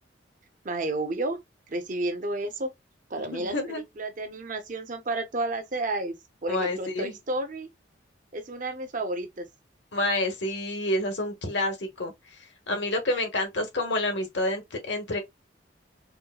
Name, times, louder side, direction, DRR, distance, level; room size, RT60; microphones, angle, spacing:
voice 1, 0.6-1.4 1.7-2.7 3.1-6.1 6.4-7.7 8.3-9.5, right 2 dB, 45° right, 0.7 m, -31 dB
voice 2, 3.2-3.8 6.5-7.2 9.9-12.1 12.7-15.2, left 1 dB, 70° left, 1.0 m, -28 dB
4.4 x 2.1 x 2.3 m
head